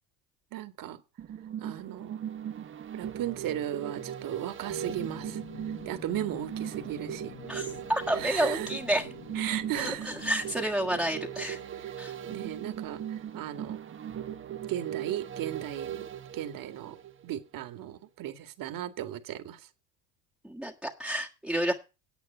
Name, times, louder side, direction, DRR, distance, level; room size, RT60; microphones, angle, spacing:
voice 1, 0.5-1.0 1.6-2.2 2.9-5.4 5.9-7.3 8.2-8.7 9.4-10.1 11.7-11.9 12.3-13.8 14.7-16.1 16.3-17.0 17.2-19.6, right 11 dB, 45° right, 2.1 m, -36 dB
sound 1, 1.2-17.4 17.8-17.9, right 10 dB, 25° right, 1.0 m, -39 dB
sound 2, 4.7-10.3, left 8 dB, 35° left, 1.8 m, -48 dB
voice 2, 7.5-9.1 9.8-11.6 12.0-12.1 20.4-21.7, right 1 dB, ahead, 1.5 m, -30 dB
10.0 x 8.5 x 5.6 m
supercardioid pair, 100°, 48 cm